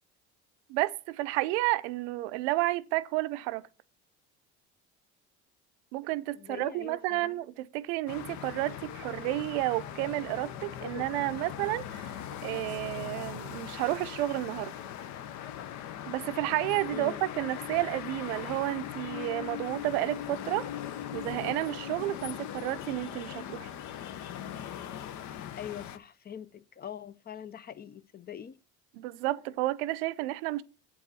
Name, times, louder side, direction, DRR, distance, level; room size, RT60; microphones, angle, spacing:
voice 1, 0.7-3.7 5.9-12.1 12.4-14.7 16.1-20.7 21.1-23.7 28.9-30.6, right 17 dB, 85° right, 0.5 m, -31 dB
voice 2, 6.3-7.4 16.9-17.2 25.6-28.6, left 9 dB, 30° left, 0.5 m, -43 dB
sound 1, 8.1-26.0, left 10 dB, 60° left, 0.7 m, -40 dB
8.3 x 4.7 x 6.8 m
supercardioid pair, 80°, 32 cm